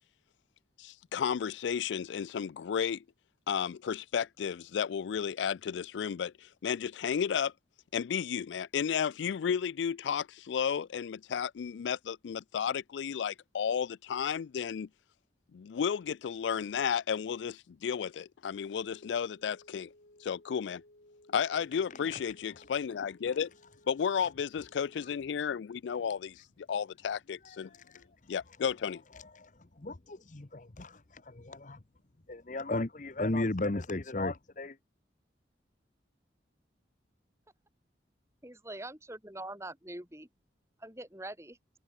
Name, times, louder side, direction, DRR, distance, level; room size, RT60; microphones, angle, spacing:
voice 1, 0.8-3.0 3.5-7.5 7.9-14.9 15.5-19.9 20.2-20.8 21.3-23.5 23.9-27.7 28.3-29.0, left 7 dB, 85° left, 0.4 m, -33 dB
sound 1, 18.5-25.1, left 1 dB, 65° left, 4.0 m, -60 dB
voice 2, 29.2-29.5 29.8-31.8 32.3-34.8, left 2 dB, 45° left, 1.0 m, -35 dB
voice 3, 38.4-40.3 40.8-41.6, right 1 dB, 15° right, 3.9 m, -43 dB
open air
head